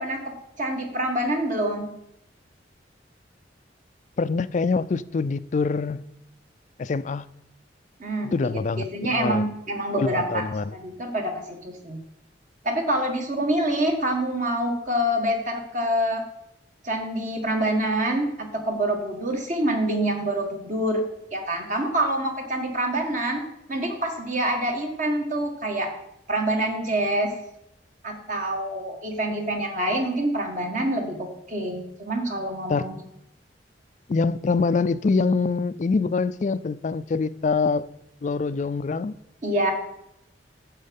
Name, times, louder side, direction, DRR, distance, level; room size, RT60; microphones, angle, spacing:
voice 1, 0.0-1.9 8.0-10.4 10.7-12.0 12.6-16.2 16.8-23.4 23.7-25.9 26.3-27.3 28.0-33.0 39.4-39.7, right 1 dB, 45° right, 1.7 m, -26 dB
voice 2, 4.2-6.1 6.8-7.3 8.2-9.5 10.0-10.7 32.7-32.9 34.1-37.9 38.2-39.1, left 4 dB, 40° left, 0.3 m, -25 dB
9.5 x 7.4 x 5.3 m
head